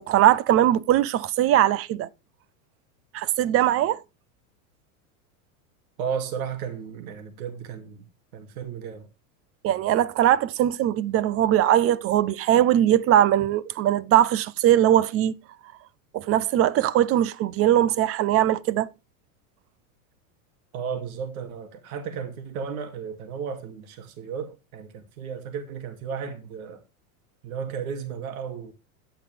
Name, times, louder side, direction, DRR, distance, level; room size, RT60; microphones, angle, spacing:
voice 1, 0.0-2.1 3.1-4.0 9.6-15.3 16.1-18.9, right 12 dB, 30° right, 0.7 m, -20 dB
voice 2, 6.0-8.0 8.3-9.1 20.7-26.8 27.4-28.7, right 6 dB, 70° right, 2.7 m, -34 dB
11.5 x 10.5 x 3.4 m
supercardioid pair, 120°, 44 cm